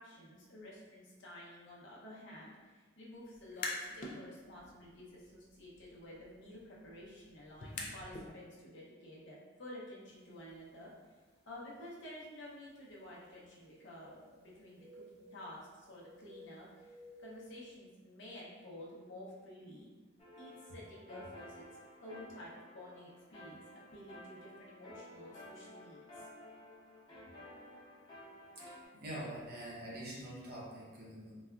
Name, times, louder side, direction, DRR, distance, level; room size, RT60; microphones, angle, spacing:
voice 1, 0.0-10.9 11.5-14.8 15.1-19.9 20.3-21.6 22.0-23.6 23.9-26.3, left 1 dB, 65° left, -5 dB, 0.8 m, -51 dB
sound 1, 3.3-4.2 4.6-8.3, left 3 dB, 40° left, 0.4 m, -46 dB
sound 2, 10.4-10.5 11.3-11.4 13.2-14.5 14.8-15.6 16.0-17.4, equal, 15° right, 0.5 m, -57 dB
sound 3, 20.2-28.9, left 1 dB, 25° left, 1.0 m, -54 dB
voice 2, 28.9-31.3, right 1 dB, 50° right, -5 dB, 0.9 m, -45 dB
4.0 x 2.3 x 2.3 m, 1.3 s
head